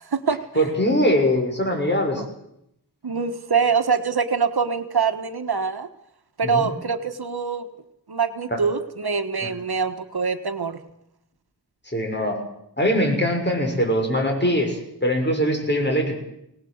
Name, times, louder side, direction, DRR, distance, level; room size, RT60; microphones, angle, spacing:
voice 1, 0.0-0.6 2.1-2.3 3.0-5.9 6.4-7.7 8.1-10.8, right 5 dB, 75° right, 9 dB, 1.4 m, -24 dB
voice 2, 0.6-2.2 6.4-6.7 8.5-8.6 9.4-9.5 11.9-12.4 12.8-16.2, equal, 30° left, 2 dB, 6.3 m, -22 dB
22.5 x 19.0 x 8.0 m, 0.80 s
wide cardioid pair, 60°, 38 cm